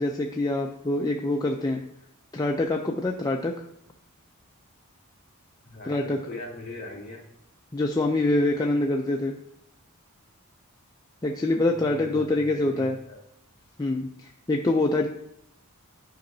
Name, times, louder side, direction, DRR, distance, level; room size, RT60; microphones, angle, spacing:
voice 1, 0.0-1.8 2.3-3.7 5.8-6.2 7.7-9.4 11.2-13.0 13.8-15.1, left 2 dB, 15° left, 1 dB, 0.4 m, -25 dB
voice 2, 5.6-7.3 11.9-13.2, left 2 dB, 40° left, -2 dB, 2.5 m, -41 dB
10.5 x 5.4 x 2.6 m, 0.79 s
head